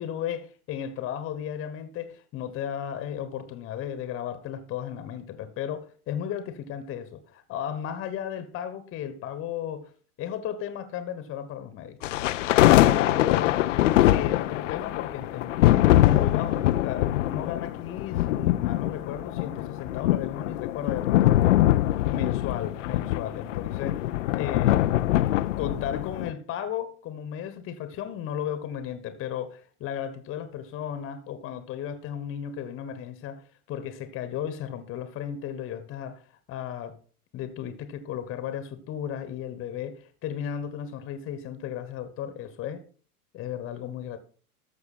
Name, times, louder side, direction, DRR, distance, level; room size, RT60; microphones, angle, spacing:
voice 1, 0.0-9.9 10.2-12.1 12.6-13.6 13.9-21.5 22.1-25.2 25.6-36.2 36.5-37.0 37.3-42.9 43.3-44.2, left 9 dB, 30° left, 1.3 m, -35 dB
sound 1, 12.0-26.3, left 14 dB, 55° left, 0.6 m, -23 dB
13.0 x 6.6 x 4.3 m
figure-of-eight pair, 95°, 45 cm